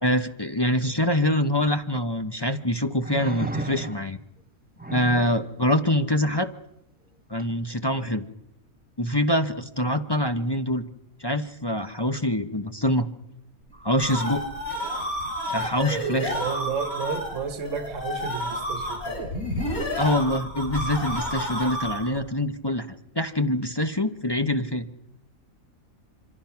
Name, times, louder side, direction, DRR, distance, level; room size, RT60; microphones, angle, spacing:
voice 1, 0.0-4.2 4.9-6.5 7.3-8.2 9.0-10.8 11.2-13.1 13.8-14.4 15.5-16.4 20.0-24.9, left 1 dB, 20° left, 0.9 m, -25 dB
sound 1, 1.7-1.8 3.0-4.2 4.8-5.5 7.4-7.5, right 3 dB, 5° right, 1.0 m, -33 dB
sound 2, 13.7-22.2, equal, 75° left, 7.3 m, -30 dB
voice 2, 16.3-19.3, right 6 dB, 60° right, 1.6 m, -32 dB
26.0 x 26.0 x 5.9 m
omnidirectional pair, 1.5 m